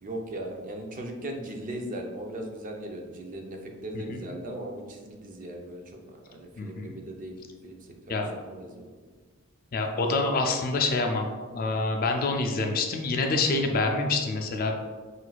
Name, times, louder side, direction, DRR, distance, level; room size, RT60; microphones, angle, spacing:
voice 1, 0.0-6.0 6.3-7.4 7.6-7.8 8.1-8.9, right 1 dB, 40° right, 2 dB, 0.5 m, -38 dB
voice 2, 6.6-6.9 8.1-8.3 9.7-11.3 11.5-14.8, left 3 dB, 45° left, 4 dB, 0.4 m, -26 dB
5.9 x 2.5 x 2.3 m, 1.4 s
head